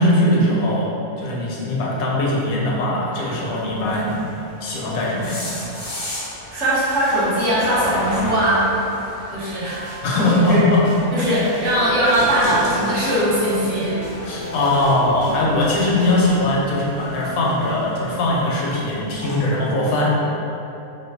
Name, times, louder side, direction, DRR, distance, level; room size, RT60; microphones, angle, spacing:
voice 1, 0.0-4.2 4.6-5.4 10.0-10.9 11.2-11.3 14.2-20.3, left 1 dB, 80° left, -4 dB, 1.1 m, -20 dB
Vehicle, 2.8-13.1 15.4-15.5, equal, 80° right, 1.3 m, -38 dB
sound 1, 3.5-19.4, left 1 dB, 40° left, 0.7 m, -37 dB
voice 2, 6.5-8.7 9.3-10.6 11.1-14.0 14.3-14.4, right 1 dB, 60° right, -9 dB, 1.0 m, -20 dB
sound 2, 9.7-16.6, right 1 dB, 30° right, 0.5 m, -34 dB
3.1 x 2.3 x 3.3 m, 2.9 s
omnidirectional pair, 1.5 m